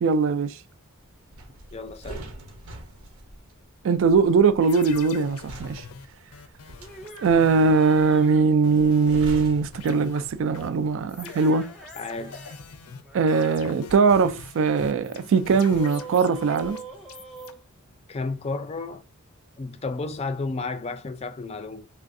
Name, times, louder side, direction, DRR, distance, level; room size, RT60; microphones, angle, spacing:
voice 1, 0.0-0.6 3.8-5.8 7.2-11.7 13.1-16.8, right 5 dB, 60° right, 0.3 m, -21 dB
sound 1, 1.3-10.7 11.0-11.2, right 1 dB, 75° right, 0.8 m, -43 dB
voice 2, 1.7-2.3 12.0-12.5 18.1-19.0 19.6-21.9, left 3 dB, 30° left, 0.4 m, -32 dB
sound 2, 4.6-9.5 9.7-17.5, left 5 dB, 85° left, 0.5 m, -44 dB
sound 3, 6.7-8.5 11.1-12.6 12.9-13.2 15.4-18.3, right 4 dB, ahead, 0.7 m, -43 dB
3.3 x 2.4 x 2.5 m
head